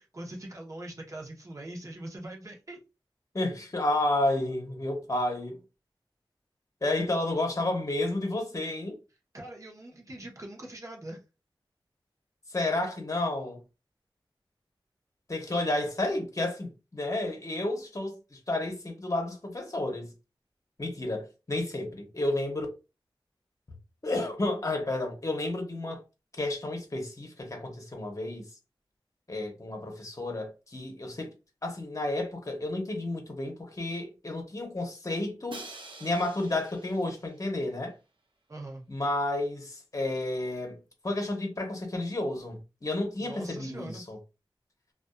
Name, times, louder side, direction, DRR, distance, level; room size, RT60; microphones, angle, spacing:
voice 1, 0.0-2.8 9.3-11.2 38.5-38.8 43.2-44.0, right 1 dB, 35° right, 0.8 m, -42 dB
voice 2, 3.3-5.6 6.8-9.0 12.5-13.6 15.3-20.1 20.8-22.7 24.0-26.0 26.4-28.5 29.3-31.3 31.6-35.7 36.0-37.9 38.9-40.8 41.0-44.2, left 2 dB, 35° left, 0.8 m, -31 dB
Crash cymbal, 35.5-37.5, right 3 dB, 70° right, 0.5 m, -46 dB
2.5 x 2.3 x 2.3 m
wide cardioid pair, 70°, 9 cm